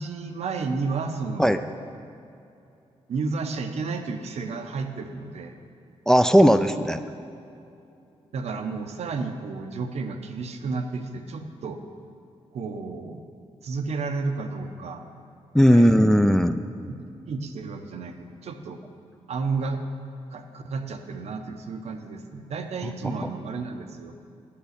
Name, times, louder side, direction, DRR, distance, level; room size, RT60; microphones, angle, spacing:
voice 1, 0.0-1.6 3.1-5.6 8.3-11.8 12.5-13.2 13.6-15.0 15.7-15.9 16.9-17.0 17.3-18.8 19.3-19.8 20.3-24.2, right 4 dB, 70° right, 6 dB, 0.7 m, -32 dB
voice 2, 6.1-7.0 15.5-16.6 23.2-23.3, equal, 5° left, 9 dB, 0.3 m, -17 dB
8.5 x 5.4 x 6.5 m, 2.6 s
cardioid pair, 70°, 11 cm